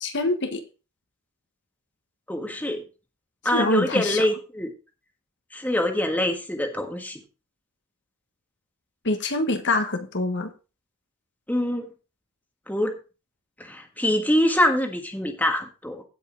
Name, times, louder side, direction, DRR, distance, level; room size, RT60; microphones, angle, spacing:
voice 1, 0.0-0.6 3.5-4.3 9.0-10.5, left 2 dB, 55° left, 6 dB, 1.3 m, -25 dB
voice 2, 2.3-2.8 3.4-4.7 5.5-7.2 11.5-11.9 12.7-12.9 13.6-16.0, left 1 dB, 10° left, 4 dB, 1.5 m, -24 dB
16.5 x 5.5 x 3.8 m, 0.32 s
head